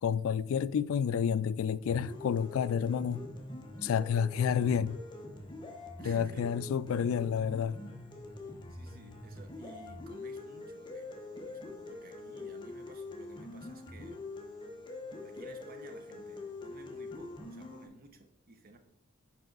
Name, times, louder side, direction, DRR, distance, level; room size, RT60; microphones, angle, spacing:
voice 1, 0.0-3.2 3.8-5.0 6.0-7.8, left 7 dB, 70° left, 0.3 m, -30 dB
sound 1, 1.9-17.9, left 2 dB, 20° left, 1.0 m, -44 dB
voice 2, 6.0-6.7 8.7-14.2 15.2-18.8, right 2 dB, 45° right, 0.9 m, -54 dB
7.3 x 5.4 x 3.9 m
head